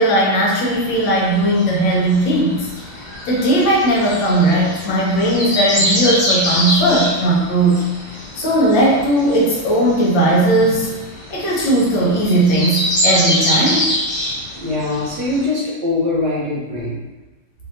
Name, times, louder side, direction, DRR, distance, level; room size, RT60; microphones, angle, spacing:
voice 1, 0.0-2.7 3.3-7.8 8.4-10.9 11.3-13.9, right 1 dB, 75° left, -3 dB, 1.4 m, -17 dB
sound 1, 0.7-15.4, left 1 dB, 50° left, 0.5 m, -25 dB
voice 2, 14.5-17.0, left 2 dB, 70° right, -5 dB, 1.2 m, -22 dB
3.2 x 2.7 x 2.5 m, 1.1 s
omnidirectional pair, 2.2 m